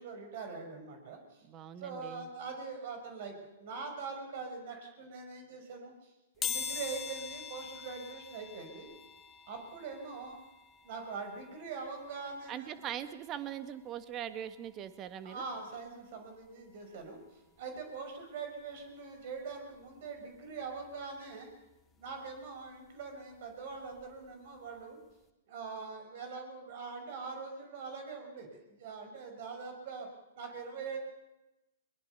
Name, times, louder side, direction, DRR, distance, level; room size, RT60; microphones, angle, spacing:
voice 1, 0.0-1.4 1.8-8.9 9.5-10.4 10.8-12.8 15.2-17.2 17.6-21.5 22.0-25.0 25.5-30.1 30.3-31.0, right 4 dB, 50° right, 5 dB, 5.5 m, -43 dB
voice 2, 1.5-2.3 12.5-15.4, right 10 dB, 30° right, 11 dB, 1.6 m, -41 dB
sound 1, 6.4-17.1 17.6-17.7 18.8-18.9 19.2-21.3 21.6-24.3 24.6-24.8 25.1-25.2, left 7 dB, 20° left, 2.0 m, -45 dB
22.5 x 21.0 x 6.9 m, 0.98 s
hypercardioid pair, 115°, 0 cm